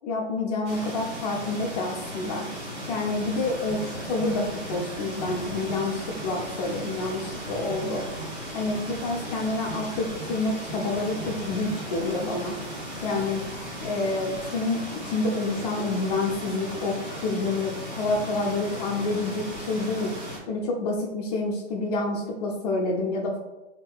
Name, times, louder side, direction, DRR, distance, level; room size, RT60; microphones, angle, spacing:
voice 1, 0.0-2.5 2.9-8.0 8.5-12.5 13.0-13.4 13.8-20.2 20.5-23.4, left 2 dB, 35° left, -1 dB, 0.6 m, -28 dB
sound 1, 0.6-20.4, equal, 15° right, 1.4 m, -37 dB
sound 2, 3.3-13.7, right 3 dB, ahead, 0.7 m, -42 dB
5.4 x 2.9 x 2.2 m, 1.0 s
hypercardioid pair, 135°, 36 cm